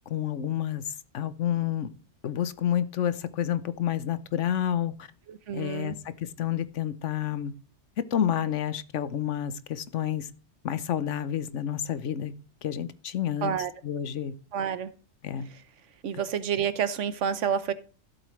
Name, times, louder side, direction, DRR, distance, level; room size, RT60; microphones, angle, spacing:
voice 1, 0.1-1.9 2.2-5.1 5.5-7.5 8.1-10.3 10.6-12.3 12.6-13.5 13.8-14.3 15.2-15.5, left 10 dB, 85° left, 1.1 m, -29 dB
voice 2, 5.3-6.0 13.4-13.7 14.5-14.9 16.0-17.7, right 8 dB, 85° right, 1.2 m, -29 dB
15.0 x 8.0 x 3.2 m
omnidirectional pair, 1.2 m